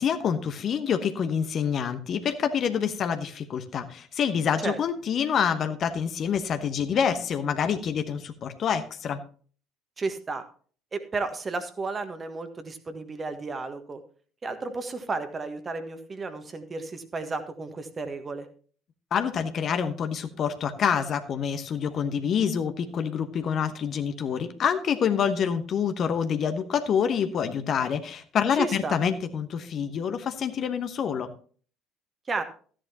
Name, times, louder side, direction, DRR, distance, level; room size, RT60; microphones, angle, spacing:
voice 1, 0.0-9.2 19.1-31.3, left 7 dB, 40° left, 9 dB, 1.0 m, -27 dB
voice 2, 10.0-10.4 10.9-14.0 14.4-18.5 28.5-29.0 32.3-32.4, right 3 dB, 25° right, 8 dB, 1.5 m, -33 dB
14.0 x 10.0 x 2.9 m, 0.43 s
figure-of-eight pair, 60°, 0 cm